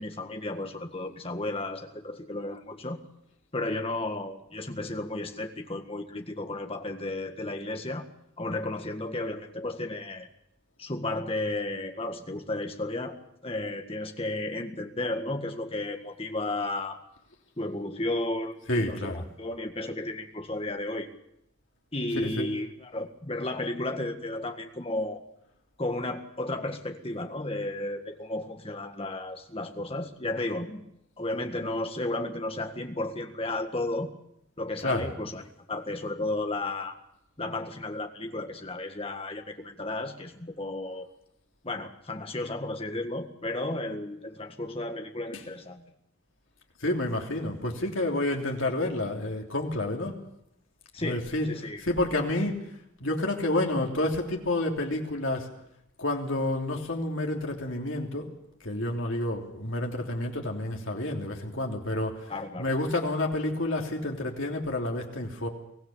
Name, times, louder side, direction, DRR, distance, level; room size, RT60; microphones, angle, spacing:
voice 1, 0.0-3.0 3.5-8.1 8.4-10.3 10.8-13.2 13.4-17.0 17.6-21.1 21.9-25.2 25.8-30.8 31.2-34.1 34.6-35.4 35.7-37.0 37.4-41.1 41.6-45.8 50.9-51.8 62.3-62.7, left 2 dB, 25° left, 5 dB, 1.7 m, -33 dB
voice 2, 18.7-19.2 22.1-22.5 34.8-35.1 45.3-45.4 46.8-50.2 51.0-52.6 53.0-55.5 56.0-58.3 58.6-65.5, left 1 dB, 65° left, 1 dB, 3.2 m, -29 dB
23.5 x 16.5 x 7.3 m, 0.77 s
head